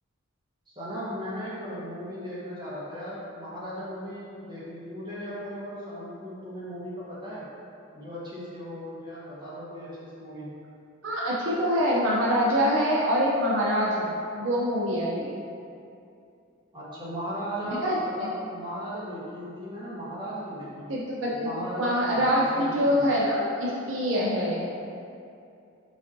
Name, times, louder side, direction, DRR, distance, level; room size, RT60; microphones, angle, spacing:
voice 1, 0.7-7.5 7.9-10.5 16.7-20.9 21.3-21.9 22.2-22.7 22.9-23.1, equal, 20° right, -9 dB, 1.1 m, -37 dB
voice 2, 11.0-14.1 14.4-15.3 17.7-18.3 20.9-21.5 21.8-24.6, equal, 65° right, -5 dB, 0.5 m, -25 dB
4.4 x 4.0 x 2.5 m, 2.6 s
head